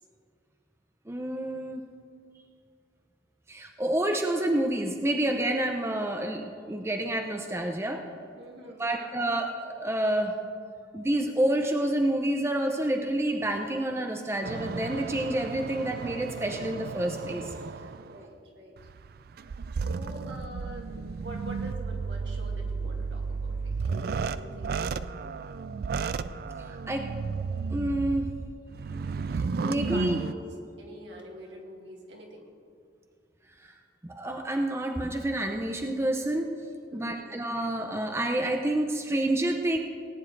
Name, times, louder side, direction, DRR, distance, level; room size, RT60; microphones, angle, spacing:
voice 1, 1.1-1.8 3.5-8.0 8.8-10.3 10.9-17.5 26.7-27.1 27.7-28.3 29.6-30.2 34.0-36.5 36.9-39.8, right 1 dB, 15° right, 3 dB, 0.6 m, -28 dB
voice 2, 8.4-9.4 17.9-18.8 19.7-24.9 29.7-30.4 30.8-32.5 36.9-37.3, right 1 dB, 75° right, -1 dB, 2.2 m, -45 dB
sound 1, 14.4-18.2 18.8-30.3, right 5 dB, 55° right, 0.3 m, -33 dB
18.5 x 10.0 x 3.3 m, 2.3 s
head